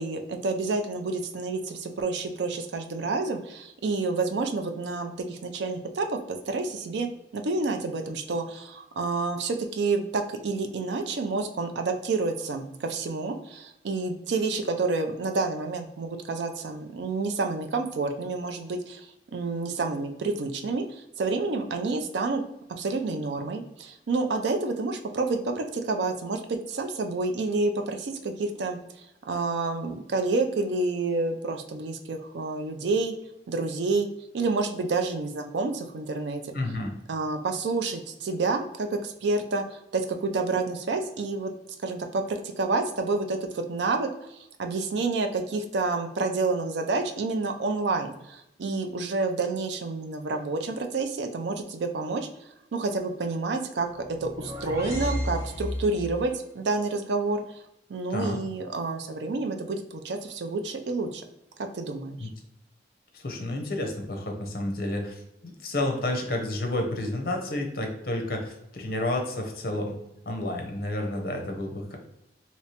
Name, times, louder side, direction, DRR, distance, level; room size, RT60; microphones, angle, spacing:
voice 1, 0.0-22.4 22.7-33.1 33.5-34.1 34.3-36.5 37.1-41.5 41.8-57.6 57.9-61.2 61.6-62.3, right 3 dB, 80° right, 6 dB, 0.4 m, -29 dB
voice 2, 36.5-36.9 58.1-58.4 62.2-62.3 63.1-70.0 70.3-72.0, left 1 dB, 55° left, 3 dB, 0.7 m, -30 dB
sound 1, 53.9-56.3, left 1 dB, 15° right, 0.5 m, -33 dB
3.2 x 2.8 x 2.8 m, 0.85 s
head